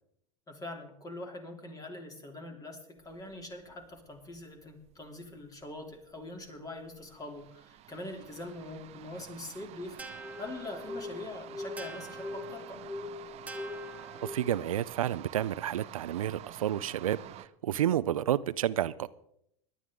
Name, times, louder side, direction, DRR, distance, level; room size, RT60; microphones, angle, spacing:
voice 1, 0.5-10.1 10.4-12.8, left 1 dB, 20° left, 3.1 m, -43 dB
sound 1, 3.0-17.5, right 13 dB, 40° right, 0.7 m, -50 dB
sound 2, 10.0-14.8, left 2 dB, 10° right, 1.2 m, -42 dB
voice 2, 14.2-19.1, right 11 dB, 85° right, 0.5 m, -30 dB
18.0 x 11.5 x 3.7 m
hypercardioid pair, 95°, 17 cm